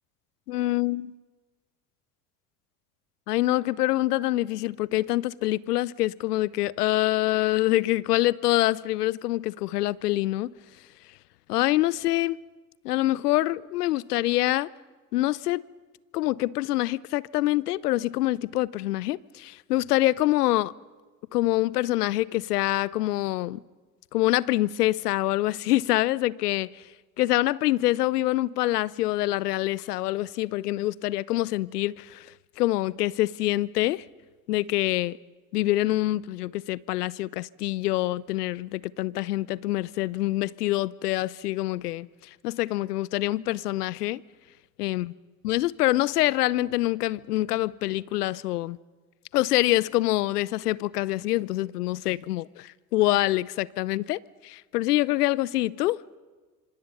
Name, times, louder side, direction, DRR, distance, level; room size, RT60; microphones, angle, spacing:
voice 1, 0.5-1.1 3.3-10.5 11.5-12.4 12.8-14.7 15.1-15.6 16.1-20.7 21.3-23.6 24.1-26.7 27.2-32.3 32.6-34.0 34.5-35.2 35.5-42.1 42.4-44.2 44.8-45.1 45.4-48.8 49.3-56.2, left 16 dB, 80° left, 0.6 m, -25 dB
26.0 x 25.5 x 5.5 m
hypercardioid pair, 70°, 46 cm